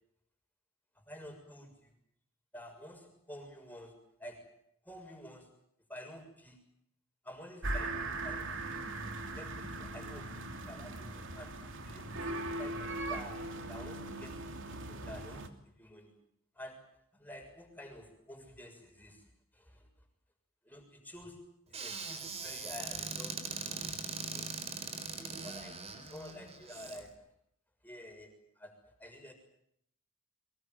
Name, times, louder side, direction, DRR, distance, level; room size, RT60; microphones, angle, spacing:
voice 1, 1.1-1.9 2.5-5.5 5.9-6.6 7.2-8.8 9.3-10.4 10.7-11.6 11.8-16.1 16.5-19.9 20.6-24.0 24.3-24.5 25.1-27.3 27.8-29.3, equal, 10° left, 3 dB, 6.7 m, -50 dB
sound 1, 7.6-15.5, right 2 dB, 65° right, 3.0 m, -39 dB
Squeak / Cupboard open or close, 21.7-27.0, right 4 dB, 30° right, 4.2 m, -41 dB
24.0 x 22.0 x 9.2 m, 0.71 s
head